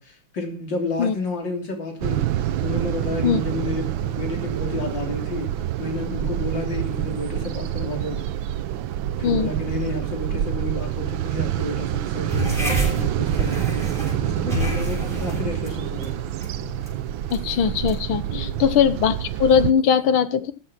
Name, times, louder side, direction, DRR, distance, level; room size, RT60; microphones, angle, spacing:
voice 1, 0.0-2.3 2.6-5.5 5.8-8.3 9.2-13.9 14.2-16.3 18.3-18.6, left 2 dB, 60° left, 3 dB, 3.6 m, -31 dB
sound 1, 2.0-19.7, right 12 dB, 75° right, 1.5 m, -27 dB
sound 2, 12.3-19.2, equal, ahead, 6.7 m, -31 dB
voice 2, 17.3-20.5, left 7 dB, 80° left, 14 dB, 1.8 m, -20 dB
14.0 x 8.0 x 5.9 m, 0.37 s
omnidirectional pair, 2.2 m